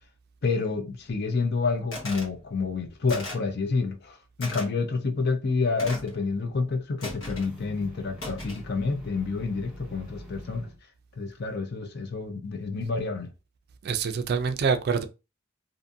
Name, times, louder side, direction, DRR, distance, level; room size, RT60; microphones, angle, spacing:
voice 1, 0.4-10.7 11.2-13.3, left 4 dB, 55° left, 0.5 m, -28 dB
sound 1, 1.9-2.3 3.1-3.5 4.4-4.7 5.8-6.2 7.0-7.5 8.2-8.7, left 1 dB, 80° left, 1.0 m, -37 dB
sound 2, 7.1-10.8, equal, 5° right, 0.8 m, -45 dB
voice 2, 13.8-15.1, right 5 dB, 50° right, 0.3 m, -25 dB
2.5 x 2.5 x 2.5 m
head